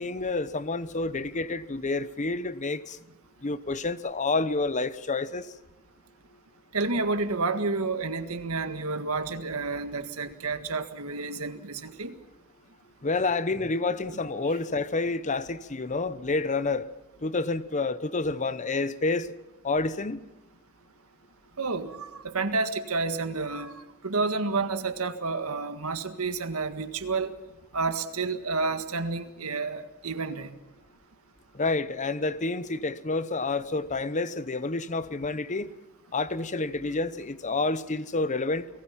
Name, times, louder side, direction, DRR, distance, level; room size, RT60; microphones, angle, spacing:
voice 1, 0.0-3.0 3.4-5.5 13.0-16.9 17.2-19.3 19.6-20.2 31.5-35.7 36.1-38.7, left 3 dB, 35° left, 0.9 m, -29 dB
voice 2, 6.7-12.1 14.1-14.2 21.6-27.3 27.7-30.5, right 3 dB, 75° right, 1.7 m, -30 dB
30.0 x 19.0 x 5.8 m
head